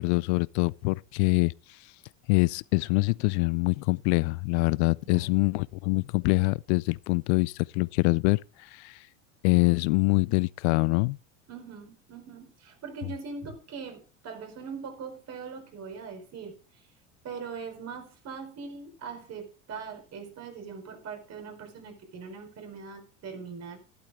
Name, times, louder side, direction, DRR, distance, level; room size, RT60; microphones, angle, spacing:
voice 1, 0.0-1.8 2.3-9.1 9.4-11.2, left 27 dB, 65° left, 0.5 m, -25 dB
voice 2, 5.0-5.4 11.5-16.9 17.2-23.8, right 5 dB, 45° right, 4.5 m, -41 dB
12.0 x 11.5 x 3.5 m
hypercardioid pair, 90°, 37 cm